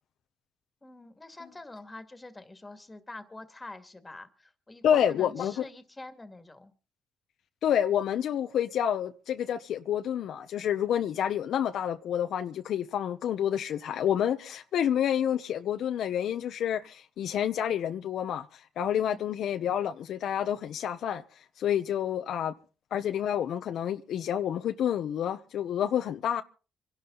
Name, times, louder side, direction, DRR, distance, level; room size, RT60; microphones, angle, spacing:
voice 1, 0.8-6.7 19.0-19.2, left 2 dB, 15° left, 2.2 m, -45 dB
voice 2, 4.8-5.6 7.6-21.2 21.6-22.5 22.9-26.4, left 9 dB, 70° left, 1.0 m, -29 dB
26.0 x 11.5 x 4.0 m
cardioid pair, 90°, 0 cm